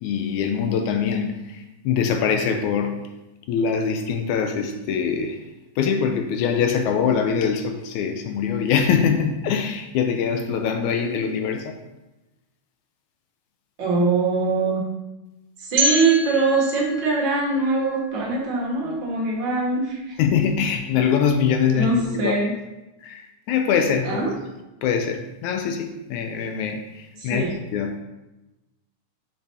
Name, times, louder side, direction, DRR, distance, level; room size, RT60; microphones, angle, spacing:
voice 1, 0.0-3.0 3.5-5.4 5.8-11.7 20.2-21.9 22.2-22.3 23.0-23.2 23.5-24.2 24.8-27.4 27.7-27.9, left 7 dB, 80° left, 5 dB, 1.8 m, -23 dB
voice 2, 13.8-14.8 15.6-20.1 21.7-22.5 24.0-24.3 27.2-27.5, right 3 dB, 45° right, -3 dB, 1.8 m, -22 dB
sound 1, 15.8-18.7, right 1 dB, 75° right, 2.6 m, -28 dB
8.5 x 6.0 x 2.8 m, 1.0 s
omnidirectional pair, 3.7 m